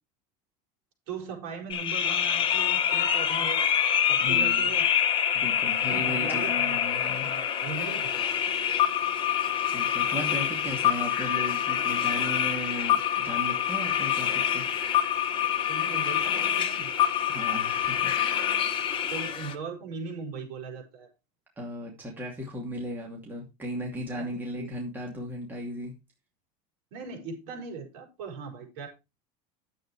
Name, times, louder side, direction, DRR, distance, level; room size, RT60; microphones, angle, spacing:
voice 1, 1.1-3.7 4.1-4.9 5.9-6.8 7.2-8.4 15.7-16.9 19.1-21.1 24.1-24.3 24.6-24.7 26.9-28.9, right 5 dB, 60° right, 1 dB, 5.5 m, -39 dB
sound 1, 1.7-19.5, left 9 dB, 30° left, 1.4 m, -26 dB
voice 2, 4.2-4.7 5.3-7.3 9.7-14.6 17.3-18.1 21.6-25.9, equal, 10° right, -1 dB, 2.5 m, -36 dB
10.5 x 8.0 x 4.7 m, 0.26 s
cardioid pair, 170°, 18 cm